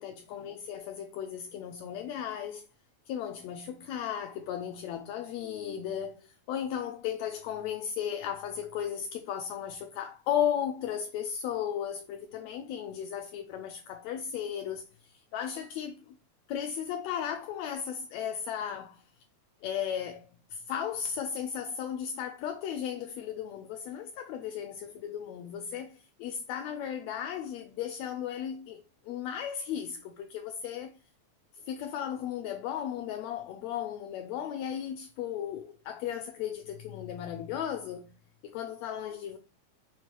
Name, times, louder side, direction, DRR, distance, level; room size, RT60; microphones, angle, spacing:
voice 1, 0.0-2.7 3.1-16.2 16.5-19.0 19.6-30.9 31.7-38.1 38.4-39.4, left 9 dB, 80° left, 1.7 m, -35 dB
4.7 x 4.7 x 4.4 m
omnidirectional pair, 3.6 m